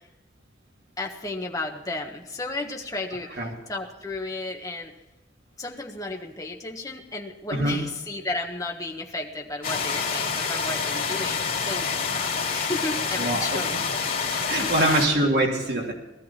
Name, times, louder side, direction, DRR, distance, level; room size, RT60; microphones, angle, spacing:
voice 1, 1.0-4.9 5.6-13.8 14.7-15.0, left 2 dB, 20° left, 1 dB, 1.4 m, -33 dB
sound 1, 9.6-15.1, left 5 dB, 50° left, 3.1 m, -27 dB
voice 2, 13.2-13.8 14.3-15.9, right 1 dB, 60° right, -1 dB, 3.1 m, -24 dB
17.5 x 13.5 x 4.4 m, 1.0 s
head